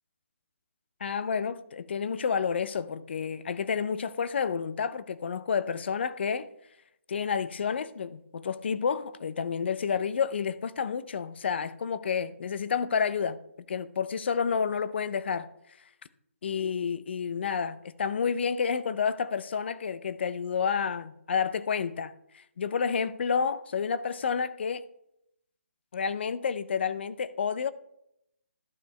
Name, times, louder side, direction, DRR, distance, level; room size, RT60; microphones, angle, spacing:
voice 1, 1.0-6.5 7.1-13.4 13.7-15.5 16.4-24.8 25.9-27.7, left 6 dB, 55° left, 0.5 m, -30 dB
11.5 x 6.8 x 3.2 m
hypercardioid pair, 155°, 7 cm